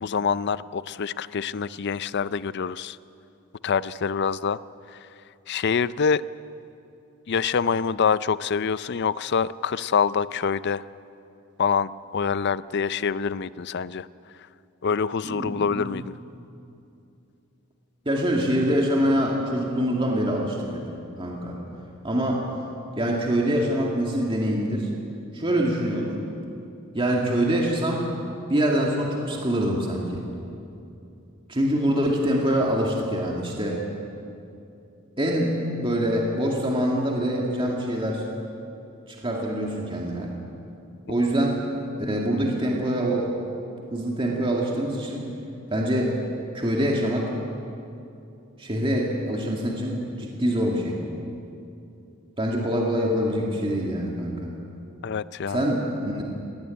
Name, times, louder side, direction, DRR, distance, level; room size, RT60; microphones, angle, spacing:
voice 1, 0.0-3.0 3.6-4.6 4.9-5.1 5.5-6.3 7.3-10.9 11.6-14.1 14.8-16.1 55.0-55.6, left 6 dB, 50° left, 17 dB, 0.5 m, -25 dB
voice 2, 15.2-16.0 18.1-20.9 21.2-21.6 22.0-22.5 23.0-24.9 25.3-26.2 26.9-28.1 28.5-30.2 31.5-33.8 35.2-38.2 39.1-40.4 41.1-41.6 42.0-43.3 43.9-45.2 45.7-46.2 46.5-47.3 48.6-51.0 52.4-54.5 55.5-56.2, equal, 25° right, -1 dB, 2.3 m, -25 dB
19.5 x 17.5 x 9.7 m, 2.7 s
head